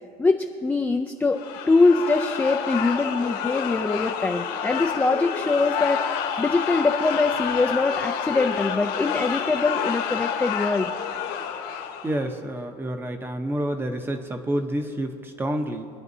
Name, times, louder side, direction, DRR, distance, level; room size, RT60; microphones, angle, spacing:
voice 1, 0.2-1.4 1.7-6.0 6.4-10.9, left 3 dB, 10° left, 3 dB, 0.4 m, -23 dB
sound 1, 1.3-12.3, left 8 dB, 70° left, 1.4 m, -29 dB
voice 2, 12.0-15.9, right 1 dB, 15° right, 6 dB, 0.8 m, -28 dB
25.0 x 9.8 x 2.7 m, 2.5 s
cardioid pair, 145°, 17 cm